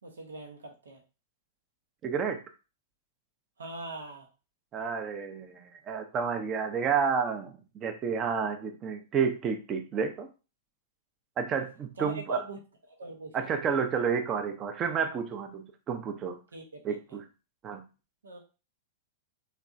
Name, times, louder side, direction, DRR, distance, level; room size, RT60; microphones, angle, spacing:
voice 1, 0.0-1.0 3.6-4.3 12.0-12.6 12.9-13.6 16.5-17.0 18.2-18.4, right 2 dB, 80° right, 1 dB, 0.9 m, -41 dB
voice 2, 2.0-2.4 4.7-7.5 7.8-10.3 11.4-12.4 13.3-16.4 16.8-17.2 17.6-17.8, right 6 dB, 30° right, 6 dB, 0.7 m, -30 dB
3.4 x 3.1 x 2.6 m, 0.32 s
hypercardioid pair, 105°, 0 cm